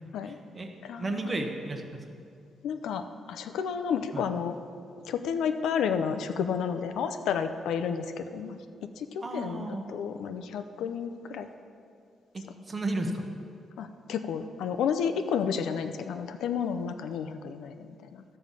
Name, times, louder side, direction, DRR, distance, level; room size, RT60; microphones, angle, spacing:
voice 1, 0.3-2.2 4.1-4.2 9.2-9.9 12.3-13.2, right 2 dB, 20° right, 4 dB, 0.9 m, -34 dB
voice 2, 0.8-1.3 2.6-4.6 5.1-8.6 9.0-11.5 13.8-18.2, left 7 dB, 80° left, 9 dB, 0.6 m, -31 dB
13.0 x 5.4 x 7.4 m, 2.3 s
cardioid pair, 180°, 0 cm